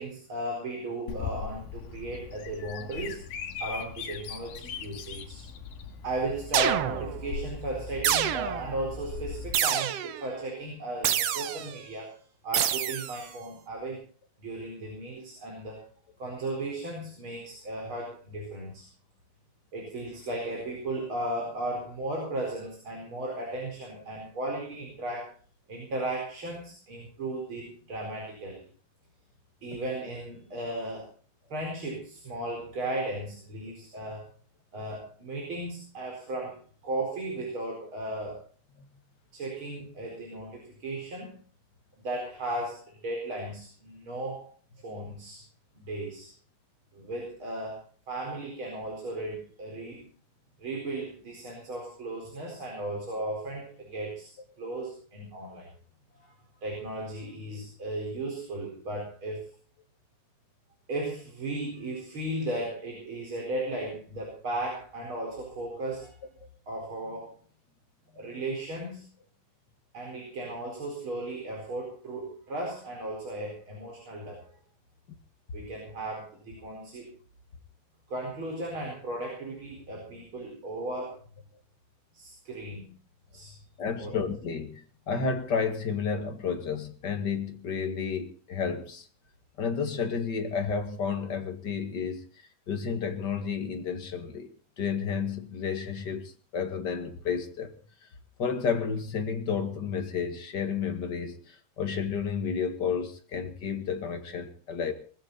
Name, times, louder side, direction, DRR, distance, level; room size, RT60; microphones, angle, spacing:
voice 1, 0.0-3.2 3.6-5.4 6.0-12.1 12.4-14.0 14.4-15.8 16.2-18.8 19.7-25.3 25.7-28.6 29.6-31.1 31.5-34.3 34.7-38.4 39.3-41.3 42.0-44.5 44.8-45.4 45.7-46.3 46.9-50.1 50.6-54.3 54.6-55.7 56.1-56.3 56.6-59.4 60.9-66.1 66.7-67.3 68.1-69.0 69.9-74.4 75.5-77.1 78.1-81.2 82.1-82.9 83.3-83.5 84.0-84.1, right 1 dB, 35° right, 5.0 m, -35 dB
Bird vocalization bird call bird song, 1.1-9.5, left 6 dB, 80° left, 3.4 m, -39 dB
sound 1, 6.5-7.2 8.0-8.7 9.5-10.2 11.0-11.7 12.5-13.2, right 10 dB, 65° right, 1.6 m, -27 dB
voice 2, 83.8-89.1 89.6-92.2 92.7-97.7 98.4-104.9, left 6 dB, 35° left, 2.0 m, -31 dB
20.0 x 15.5 x 4.1 m
omnidirectional pair, 4.0 m